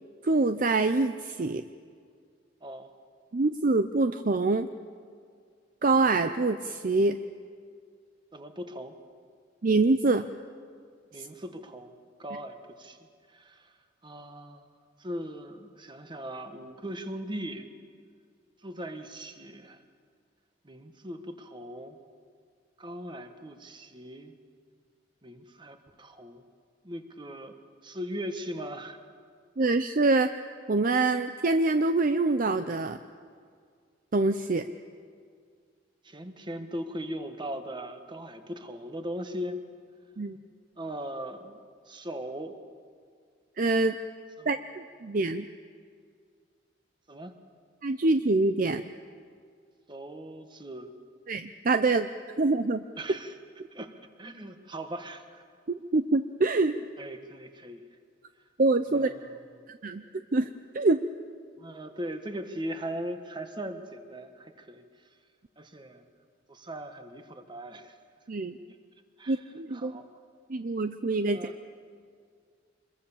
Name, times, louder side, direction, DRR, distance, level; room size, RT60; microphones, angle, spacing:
voice 1, 0.2-1.6 3.3-4.7 5.8-7.2 9.6-10.2 11.2-11.3 29.6-30.3 30.7-33.0 34.1-34.7 40.2-40.4 43.6-43.9 44.5-45.5 47.8-48.8 51.3-52.1 52.4-52.8 55.9-56.8 58.6-59.1 59.7-60.0 60.3-60.5 60.7-61.0 68.3-68.6 69.3-69.9 70.5-71.4, right 3 dB, 45° right, 9 dB, 0.6 m, -25 dB
voice 2, 2.6-2.9 8.3-8.9 11.1-11.9 12.2-13.0 13.3-13.7 14.0-14.7 15.0-17.7 18.6-19.8 20.6-22.0 22.8-24.3 25.2-26.4 26.8-27.5 27.8-29.0 36.0-39.6 40.7-41.6 41.9-42.6 44.4-44.5 47.1-47.3 49.9-50.9 53.0-53.3 53.7-53.9 54.2-55.4 57.0-57.8 58.9-59.4 61.6-64.9 65.6-66.0 66.5-67.9 68.7-68.8 69.2-69.4 69.7-70.2 71.3-71.6, equal, 25° right, 7 dB, 1.5 m, -39 dB
26.0 x 22.0 x 7.2 m, 2.1 s
head